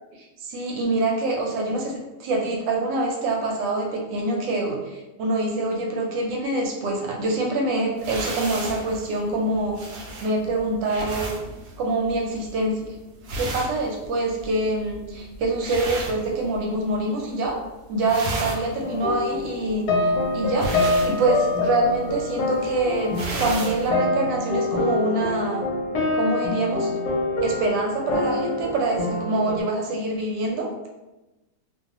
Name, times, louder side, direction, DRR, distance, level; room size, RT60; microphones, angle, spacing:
voice 1, 0.4-9.8 10.2-11.3 11.8-12.8 13.4-17.6 17.9-25.7 26.1-26.9 27.4-30.7, right 2 dB, 85° right, 0 dB, 1.2 m, -25 dB
sound 1, 8.0-16.9 17.2-17.7 17.9-23.9, right 2 dB, 70° right, 0.9 m, -34 dB
sound 2, 18.8-29.6, left 2 dB, 70° left, 1.0 m, -25 dB
2.7 x 2.3 x 2.8 m, 1.0 s
omnidirectional pair, 1.9 m